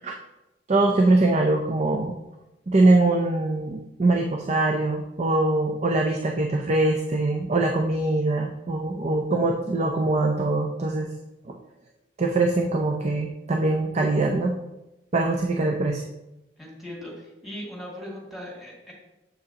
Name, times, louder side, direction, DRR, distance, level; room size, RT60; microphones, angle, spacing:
voice 1, 0.7-2.2 2.7-11.1 11.5-11.6 12.2-14.5 15.1-16.0, right 2 dB, 40° right, 3 dB, 0.6 m, -23 dB
voice 2, 16.6-18.9, equal, ahead, -4 dB, 2.3 m, -39 dB
7.5 x 6.9 x 2.9 m, 0.96 s
head